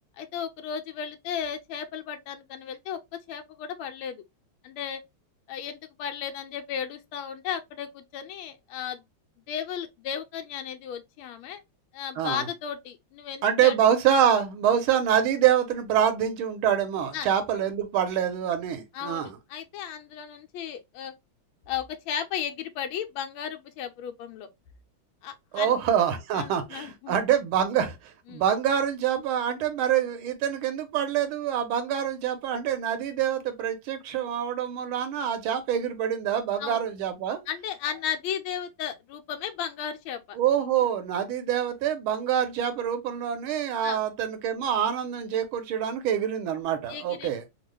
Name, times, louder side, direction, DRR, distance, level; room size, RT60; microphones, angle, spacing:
voice 1, 0.2-3.0 3.3-4.2 4.6-5.0 5.5-9.0 9.5-11.6 11.9-13.8 17.1-17.3 18.9-21.1 21.7-24.5 25.2-25.7 26.3-27.2 28.3-28.4 36.6-36.8 37.5-40.4 43.8-44.0 46.9-47.3, left 8 dB, 80° left, 1.4 m, -35 dB
voice 2, 12.2-12.5 13.4-19.4 25.5-37.4 40.3-47.4, right 9 dB, 80° right, 1.5 m, -26 dB
3.6 x 2.3 x 3.1 m
omnidirectional pair, 2.3 m